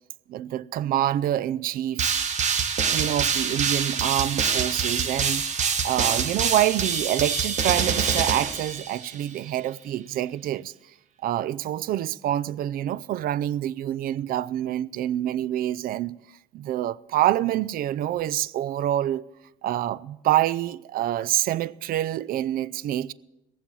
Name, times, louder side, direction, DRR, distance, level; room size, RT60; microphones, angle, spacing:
voice 1, 0.3-2.1 2.9-10.7 11.2-16.2 16.5-19.2 19.6-23.1, right 12 dB, 60° right, 0.4 m, -26 dB
sound 1, 2.0-9.3, right 6 dB, 45° right, 1.1 m, -25 dB
17.5 x 7.4 x 6.9 m
cardioid pair, 110°, 17 cm